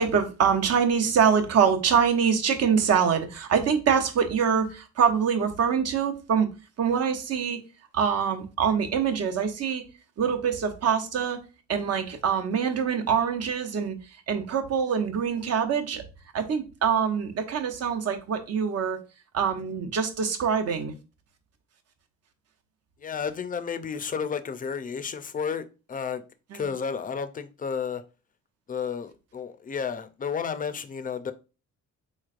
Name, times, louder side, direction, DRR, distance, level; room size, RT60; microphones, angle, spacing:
voice 1, 0.0-6.5 6.8-7.6 7.9-9.8 10.2-11.4 11.7-14.0 14.3-16.0 16.3-19.0 19.3-20.9 26.5-26.7, right 7 dB, 55° right, 0.8 m, -24 dB
voice 2, 23.0-26.2 26.5-28.0 28.7-31.3, left 6 dB, 30° left, 0.4 m, -32 dB
4.1 x 3.2 x 2.4 m
cardioid pair, 90°, 30 cm